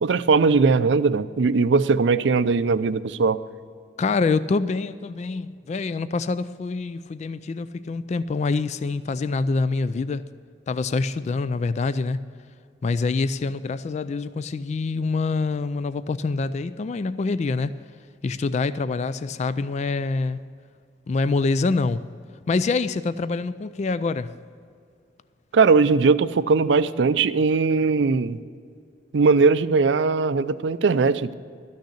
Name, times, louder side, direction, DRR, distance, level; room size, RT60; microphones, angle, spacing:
voice 1, 0.0-3.4 25.5-28.4 29.1-31.3, right 4 dB, 75° right, 14 dB, 0.5 m, -19 dB
voice 2, 4.0-10.2 10.7-12.2 12.8-17.7 18.2-20.4 21.1-22.0 22.5-24.3, left 3 dB, 40° left, 15 dB, 0.3 m, -25 dB
13.0 x 6.5 x 8.3 m, 2.2 s
head